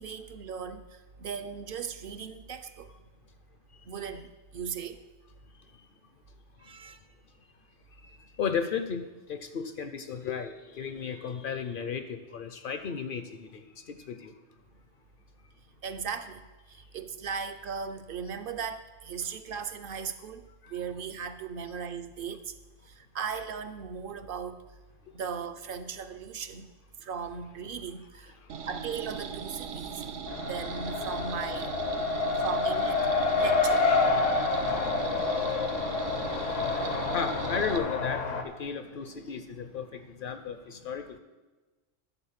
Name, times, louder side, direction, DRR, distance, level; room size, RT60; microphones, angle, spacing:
voice 1, 0.0-2.9 3.9-5.0 6.6-7.0 15.8-22.6 22.9-24.7 25.1-26.7 27.0-28.3 28.6-30.0 30.4-31.7 32.4-33.1 33.3-33.9 40.7-40.8, right 6 dB, 60° right, 0.6 m, -38 dB
voice 2, 5.5-5.9 6.6-7.0 7.9-14.4 16.7-16.9 20.6-20.8 25.0-25.1 28.4-28.7 29.9-30.4 32.0-32.4 34.2-41.2, left 6 dB, 55° left, 0.6 m, -36 dB
sound 1, 28.5-37.8, right 6 dB, 80° right, 1.0 m, -39 dB
Race car auto racing, 30.3-38.4, left 4 dB, 85° left, 1.2 m, -28 dB
11.0 x 4.3 x 7.2 m
omnidirectional pair, 1.3 m